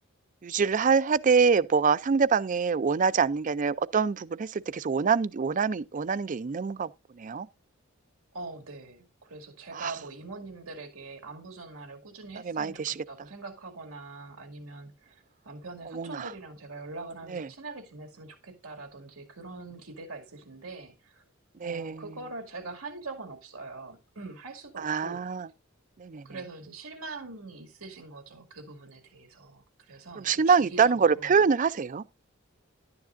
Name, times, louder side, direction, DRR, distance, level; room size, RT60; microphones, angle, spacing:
voice 1, 0.4-6.9 7.2-7.5 9.7-9.9 12.4-13.0 15.9-16.3 17.3-17.5 21.6-22.0 24.8-25.5 26.0-26.3 30.2-32.0, right 5 dB, 40° right, 0.4 m, -25 dB
voice 2, 8.3-21.2 21.6-25.3 26.2-31.4, right 3 dB, 85° right, 2.2 m, -43 dB
11.5 x 9.7 x 2.5 m
head